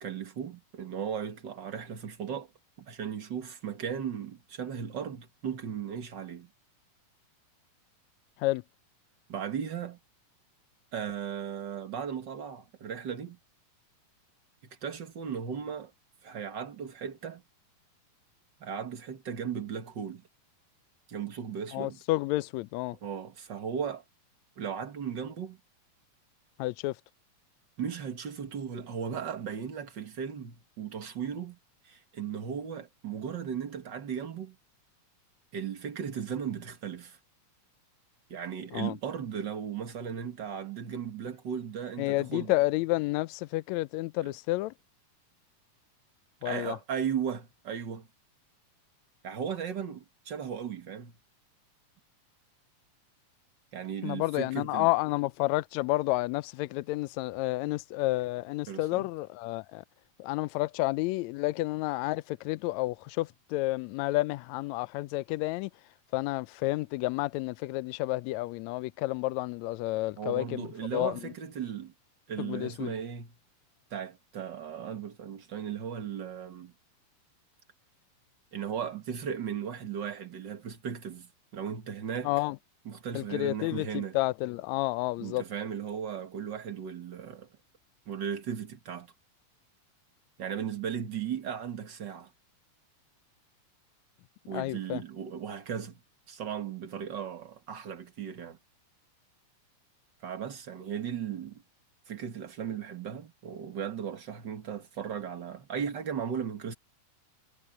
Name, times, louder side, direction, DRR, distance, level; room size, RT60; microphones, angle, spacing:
voice 1, 0.0-2.5 2.8-6.5 9.3-10.0 10.9-13.4 14.6-15.9 16.2-17.4 18.6-20.2 21.1-22.0 23.0-24.0 24.6-25.6 27.8-31.6 31.8-34.6 35.5-37.2 38.3-42.5 44.2-44.3 46.4-48.1 49.2-51.1 53.7-54.9 58.7-59.1 70.2-71.9 72.3-73.3 73.9-76.7 78.5-82.3 82.9-84.2 85.2-87.5 88.1-89.1 90.4-92.3 94.5-96.0 96.3-98.6 100.2-101.6 102.1-106.7, right 8 dB, 40° right, 1.8 m, -36 dB
voice 2, 21.7-23.0 26.6-27.0 38.7-39.0 42.0-44.7 46.4-46.8 54.0-59.8 60.2-65.7 66.1-70.7 70.9-71.3 72.4-72.9 82.2-82.6 83.1-85.4 94.5-95.0, left 19 dB, 85° left, 1.6 m, -30 dB
omnidirectional pair, 3.8 m